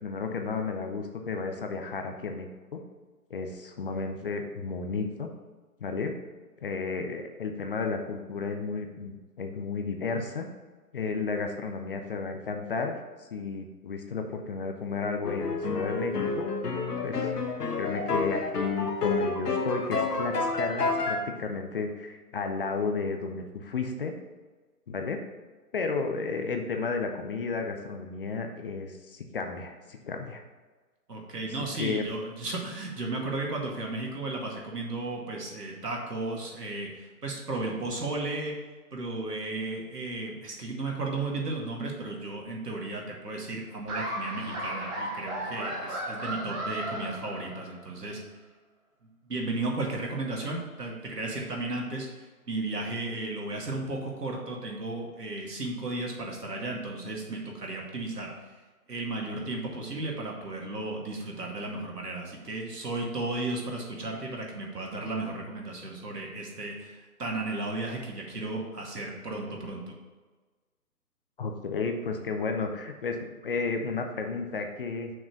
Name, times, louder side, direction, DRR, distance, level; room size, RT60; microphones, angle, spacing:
voice 1, 0.0-2.8 3.3-5.3 5.8-6.1 6.6-10.5 10.9-12.9 13.3-16.5 17.0-17.3 17.8-24.1 24.9-25.2 25.7-30.4 31.8-32.0 71.4-75.1, left 4 dB, 35° left, 5 dB, 0.7 m, -33 dB
sound 1, 15.2-21.2, left 3 dB, 80° left, 1.2 m, -29 dB
voice 2, 31.1-38.5 38.9-48.2 49.2-58.5 58.9-69.8, right 2 dB, 85° right, -1 dB, 2.2 m, -34 dB
Laughter, 43.9-47.9, right 1 dB, 15° right, 1.2 m, -35 dB
6.2 x 4.7 x 5.3 m, 1.3 s
figure-of-eight pair, 145°, 46 cm